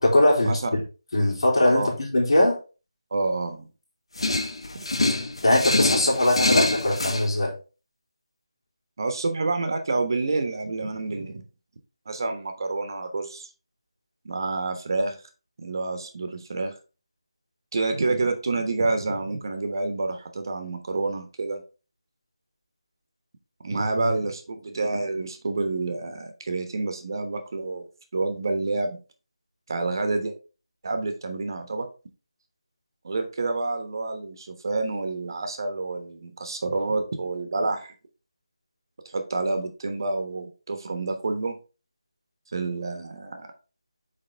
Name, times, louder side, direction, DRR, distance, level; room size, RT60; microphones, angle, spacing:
voice 1, 0.0-0.6 1.1-2.6 5.4-7.5, left 1 dB, 60° left, -2 dB, 3.3 m, -20 dB
voice 2, 3.1-3.7 4.7-4.8 9.0-11.4 12.1-13.5 14.2-15.2 15.6-16.7 17.7-21.6 23.6-27.8 28.1-29.0 29.7-30.3 30.8-31.9 33.0-37.9 39.0-41.6 42.5-43.5, right 3 dB, 45° right, 6 dB, 1.2 m, -28 dB
sound 1, 4.2-7.2, left 2 dB, 80° left, 1.1 m, -25 dB
8.7 x 3.6 x 3.4 m, 0.33 s
figure-of-eight pair, 165°, 3 cm